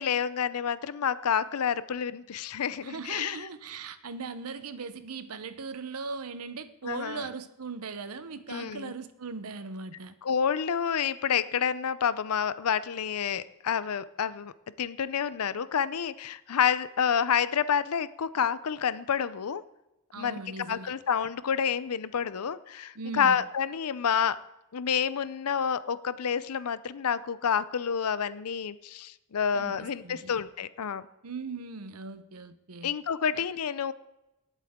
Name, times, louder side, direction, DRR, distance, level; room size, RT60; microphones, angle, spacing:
voice 1, 0.0-3.5 6.8-7.2 8.5-8.9 10.2-14.5 14.8-19.6 20.2-20.4 20.7-24.4 24.7-31.1 32.8-33.9, left 7 dB, 90° left, 16 dB, 0.5 m, -29 dB
voice 2, 2.8-10.1 20.1-21.0 22.9-23.4 29.5-30.3 31.2-32.9 33.3-33.4, right 4 dB, 90° right, 12 dB, 0.8 m, -39 dB
18.5 x 8.2 x 3.7 m, 0.93 s
head